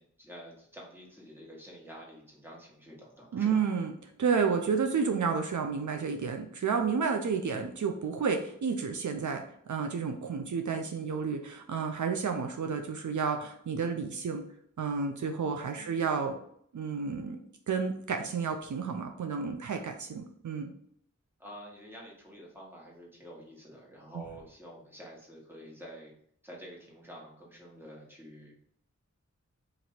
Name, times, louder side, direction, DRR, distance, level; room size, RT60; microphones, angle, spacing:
voice 1, 0.0-3.7 15.7-16.2 21.4-26.1 26.4-28.6, equal, 5° right, -3 dB, 1.4 m, -49 dB
voice 2, 3.3-3.9 4.2-14.4 14.8-16.3 16.7-17.4 17.7-20.7, right 5 dB, 75° right, 4 dB, 0.5 m, -31 dB
3.0 x 2.6 x 4.2 m, 0.66 s
wide cardioid pair, 40°, 30 cm